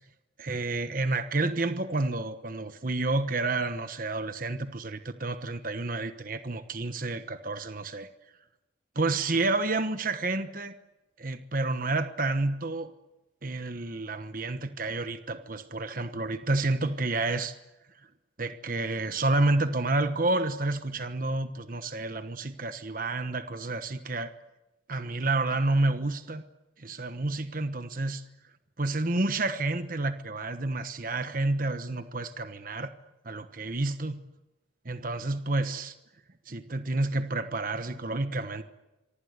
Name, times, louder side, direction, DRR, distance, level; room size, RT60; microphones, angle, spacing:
voice 1, 0.4-8.1 8.9-10.7 11.2-12.9 13.4-17.6 18.4-24.3 24.9-26.4 26.8-28.2 28.8-32.9 33.2-34.2 34.8-35.9 36.5-38.6, right 2 dB, 45° right, 10 dB, 1.2 m, -29 dB
26.5 x 25.0 x 8.1 m, 1.0 s
head